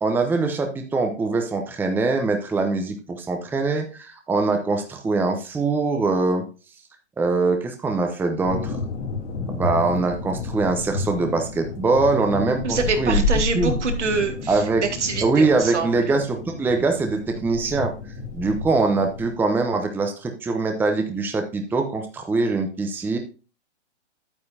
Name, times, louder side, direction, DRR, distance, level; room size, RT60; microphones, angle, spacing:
voice 1, 0.0-6.4 7.2-8.7 9.5-13.2 13.5-13.8 14.5-14.8 15.2-17.9 18.3-23.2, right 3 dB, 5° right, 4 dB, 0.7 m, -23 dB
sound 1, 8.4-19.3, left 3 dB, 80° left, 2.8 m, -30 dB
voice 2, 12.6-14.6 15.0-16.0, right 4 dB, 80° right, 4 dB, 2.2 m, -25 dB
9.5 x 8.9 x 2.7 m, 0.33 s
hypercardioid pair, 125°, 35 cm